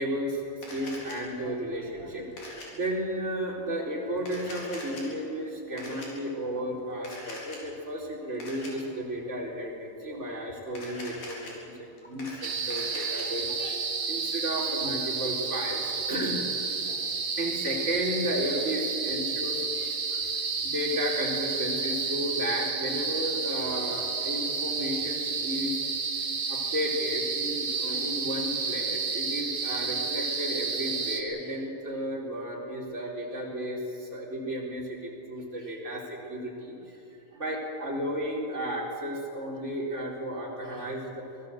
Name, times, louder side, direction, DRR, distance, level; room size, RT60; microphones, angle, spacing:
voice 1, 0.0-13.8 14.1-17.0 17.4-25.7 26.5-37.0 37.3-41.3, equal, 20° right, -3 dB, 4.0 m, -33 dB
Camera, 0.6-1.2 2.4-2.7 4.2-5.0 5.8-6.1 7.0-7.6 8.4-8.7 10.7-11.5 12.0-13.2, left 2 dB, 70° left, 5.8 m, -42 dB
sound 1, 12.4-31.2, right 4 dB, 70° right, 4.1 m, -31 dB
24.5 x 19.5 x 7.9 m, 2.8 s
omnidirectional pair, 4.1 m